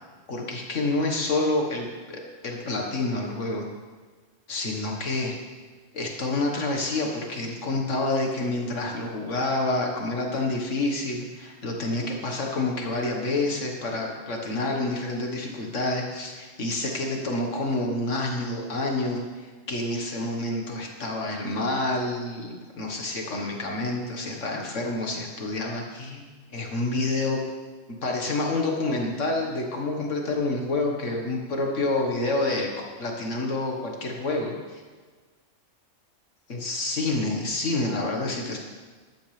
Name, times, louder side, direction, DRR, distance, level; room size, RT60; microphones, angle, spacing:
voice 1, 0.3-3.7 4.5-5.4 5.9-26.2 26.5-27.4 28.0-32.7 33.0-34.8 36.5-38.6, left 2 dB, 80° left, 0 dB, 2.1 m, -28 dB
14.5 x 11.5 x 3.5 m, 1.4 s
omnidirectional pair, 1.2 m